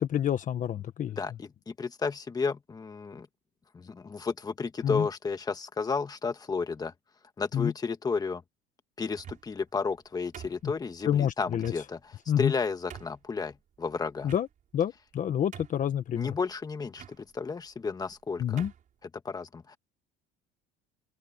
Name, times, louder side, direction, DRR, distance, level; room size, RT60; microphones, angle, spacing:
voice 1, 0.0-1.2 4.8-5.1 7.5-7.7 11.0-11.7 12.3-12.5 14.2-14.5 14.7-16.3 18.4-18.7, left 10 dB, 40° left, 1.4 m, -28 dB
voice 2, 1.1-3.3 3.7-6.9 7.4-8.4 9.0-14.3 16.2-18.7 19.2-19.8, left 4 dB, 20° left, 1.7 m, -32 dB
sound 1, 9.1-9.6 10.3-11.0 11.6-11.8 12.4-12.5 12.9-13.2 14.2-14.8 15.1-15.2 15.5-16.0 16.9-17.2 18.0-18.2 18.6-18.9, right 9 dB, 40° right, 4.6 m, -46 dB
open air
cardioid pair, 135°, 20 cm